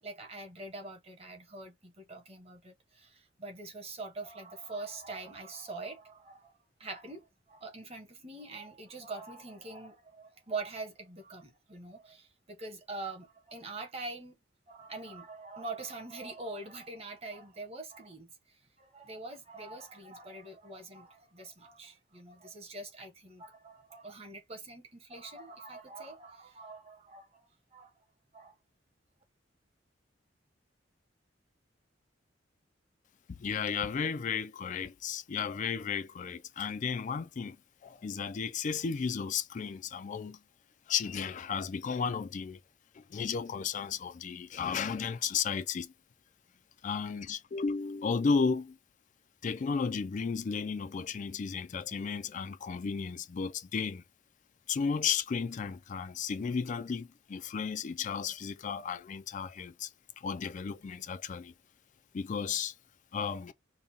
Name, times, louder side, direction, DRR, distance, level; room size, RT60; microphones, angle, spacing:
voice 1, 0.0-14.3 14.7-27.9 28.3-28.6, right 3 dB, 35° right, 1.2 m, -44 dB
voice 2, 33.4-37.6 37.8-40.4 40.9-42.6 43.1-45.9 46.8-48.7 49.4-54.0 54.7-59.9 60.2-61.5 62.1-62.7 63.1-63.5, left 6 dB, 40° left, 0.4 m, -33 dB
5.3 x 2.2 x 2.8 m
head